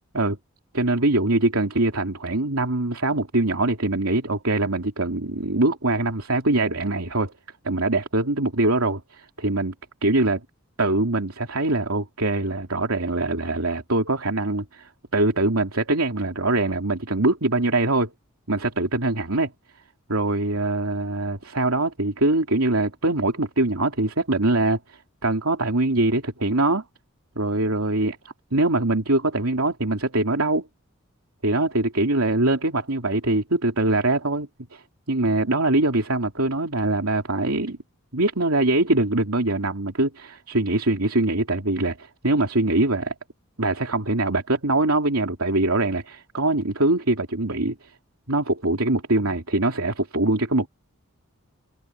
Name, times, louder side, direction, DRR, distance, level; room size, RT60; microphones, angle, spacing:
voice 1, 0.7-7.3 7.6-9.7 10.0-10.4 10.8-18.1 18.5-19.5 20.1-26.8 27.4-28.2 28.5-30.7 31.4-37.8 38.1-43.1 43.6-47.9 48.3-50.7, right 2 dB, 90° right, 3.1 m, -23 dB
head